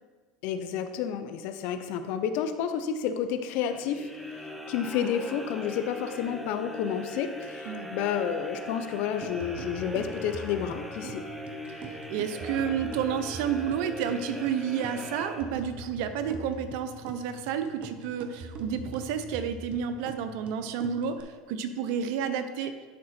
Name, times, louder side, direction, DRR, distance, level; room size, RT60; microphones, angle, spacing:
voice 1, 0.4-4.1 4.7-11.2, left 8 dB, 65° left, 9 dB, 0.6 m, -30 dB
sound 1, 3.7-15.9, equal, ahead, 0.7 m, -40 dB
sound 2, 9.2-21.2, right 3 dB, 40° right, 0.9 m, -43 dB
voice 2, 12.1-22.7, right 8 dB, 70° right, 9 dB, 0.7 m, -30 dB
11.0 x 3.8 x 4.3 m, 1.4 s
supercardioid pair, 105°, 3 cm